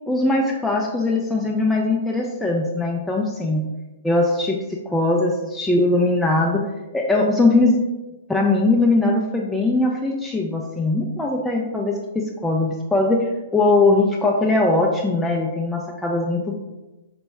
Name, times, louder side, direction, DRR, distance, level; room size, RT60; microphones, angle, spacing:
voice 1, 0.1-3.7 4.0-4.6 4.9-6.7 6.9-7.8 8.3-16.5, left 2 dB, 5° left, -2 dB, 0.4 m, -20 dB
4.2 x 2.0 x 3.4 m, 1.1 s
hypercardioid pair, 120°, 0 cm